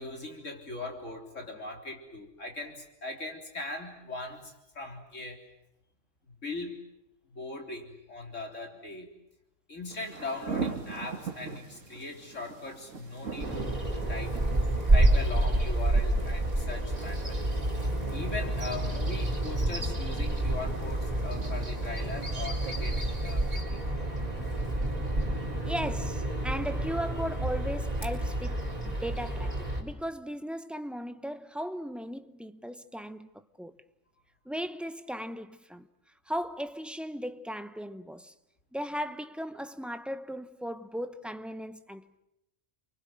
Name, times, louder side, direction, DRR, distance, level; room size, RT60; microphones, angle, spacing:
voice 1, 0.0-5.4 6.4-6.7 7.3-9.1 9.7-13.8 14.1-14.4 14.9-17.5 18.1-23.9, left 2 dB, 80° left, 4.1 m, -40 dB
sound 1, 9.9-23.6, right 5 dB, 90° right, 2.2 m, -43 dB
Bird vocalization bird call bird song, 13.4-29.8, right 1 dB, 30° right, 4.6 m, -29 dB
voice 2, 25.7-33.7 34.5-35.9 36.3-38.3 38.7-42.2, equal, ahead, 0.8 m, -37 dB
29.0 x 24.0 x 7.7 m
omnidirectional pair, 1.3 m